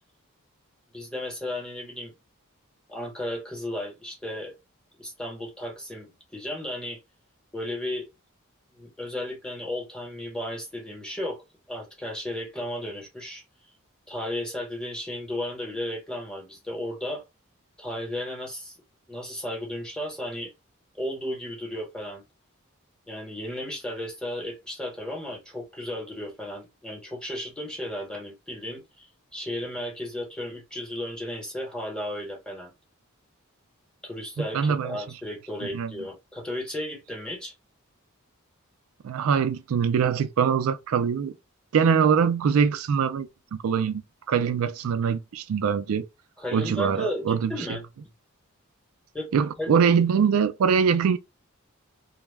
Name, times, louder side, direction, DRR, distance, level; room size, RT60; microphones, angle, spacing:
voice 1, 0.9-2.1 2.9-4.6 5.0-7.0 7.5-8.1 8.7-13.4 14.1-17.2 17.8-18.8 19.1-20.5 20.9-22.2 23.1-32.7 34.0-37.5 46.4-47.8 49.1-49.3 49.6-49.7, left 1 dB, 5° left, 1.0 m, -34 dB
voice 2, 34.4-35.0 35.6-35.9 39.0-41.3 41.7-43.3 43.6-44.0 44.3-46.0 46.5-47.5 49.3-51.2, right 6 dB, 80° right, 0.4 m, -23 dB
2.2 x 2.0 x 3.3 m
head